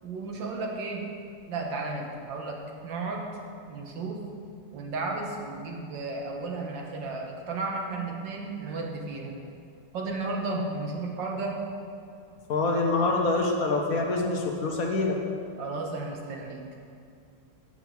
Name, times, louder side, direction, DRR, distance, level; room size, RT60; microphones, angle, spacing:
voice 1, 0.0-1.1 1.5-3.3 3.7-4.2 4.7-9.4 9.9-11.6 15.6-16.7, right 3 dB, 80° right, 0 dB, 1.8 m, -33 dB
voice 2, 12.5-15.2, left 3 dB, 60° left, 1 dB, 1.1 m, -25 dB
7.5 x 6.4 x 7.0 m, 2.4 s
omnidirectional pair, 2.0 m